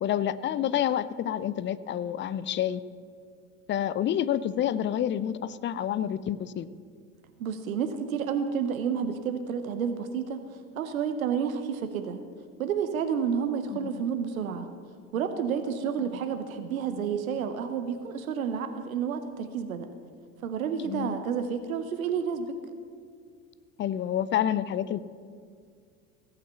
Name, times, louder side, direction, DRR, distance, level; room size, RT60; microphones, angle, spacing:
voice 1, 0.0-2.8 3.7-6.7 13.7-14.0 20.8-21.1 23.8-25.0, left 10 dB, 30° left, 16 dB, 0.5 m, -28 dB
voice 2, 7.4-10.4 10.8-12.2 12.6-14.7 15.1-19.9 20.4-22.6, right 7 dB, 80° right, 8 dB, 0.9 m, -30 dB
17.0 x 5.8 x 6.8 m, 2.2 s
hypercardioid pair, 75°, 41 cm